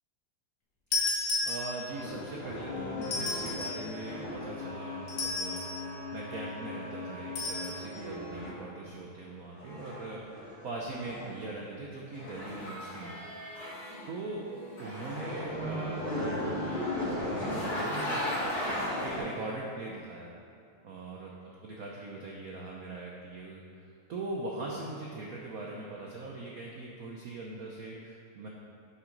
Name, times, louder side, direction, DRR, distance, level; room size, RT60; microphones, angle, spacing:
sound 1, 0.9-2.1 3.0-3.9 5.1-5.8 7.4-7.8, left 3 dB, 90° left, 2.4 m, -33 dB
voice 1, 1.4-5.6 6.1-13.3 14.1-14.4 14.8-20.4 20.8-28.5, right 2 dB, 70° right, -2 dB, 0.8 m, -41 dB
sound 2, 1.9-8.5 9.5-11.6 12.1-14.1 14.4-19.2, left 1 dB, 65° left, 3.1 m, -37 dB
9.6 x 5.9 x 3.9 m, 2.4 s
omnidirectional pair, 2.4 m